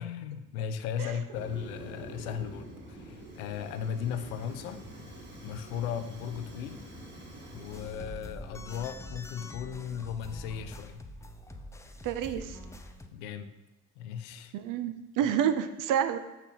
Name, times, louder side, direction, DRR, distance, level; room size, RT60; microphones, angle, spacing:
voice 1, 0.0-4.8 5.4-6.8 7.5-11.0 13.1-13.5 14.0-14.5, left 8 dB, 70° left, 10 dB, 0.7 m, -36 dB
Fire, 1.3-8.0, right 1 dB, 25° right, 1.8 m, -46 dB
sound 1, 7.7-13.1, left 1 dB, 5° left, 0.4 m, -45 dB
voice 2, 12.0-12.6 14.5-16.2, right 9 dB, 45° right, 10 dB, 0.5 m, -29 dB
6.8 x 5.9 x 2.8 m, 1.1 s
figure-of-eight pair, 55°, 44 cm